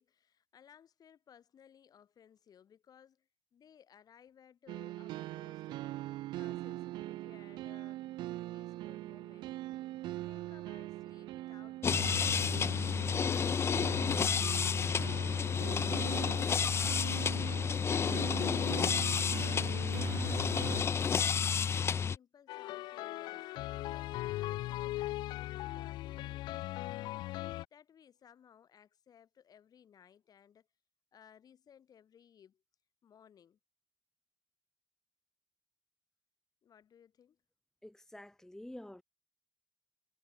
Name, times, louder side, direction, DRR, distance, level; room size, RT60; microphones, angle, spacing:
voice 1, 0.0-8.0 8.5-9.5 10.1-15.7 19.2-19.9 20.4-23.5 23.9-30.7 31.1-32.6 33.0-33.6 36.6-37.4, left 8 dB, 60° left, 5.6 m, -61 dB
sound 1, 4.7-20.8, right 16 dB, 85° right, 0.4 m, -42 dB
sound 2, 11.8-22.2, left 6 dB, 35° left, 0.3 m, -31 dB
sound 3, 22.5-27.6, left 16 dB, 85° left, 0.7 m, -39 dB
voice 2, 37.8-39.0, left 1 dB, 5° left, 2.1 m, -48 dB
cardioid pair, 85°, 8 cm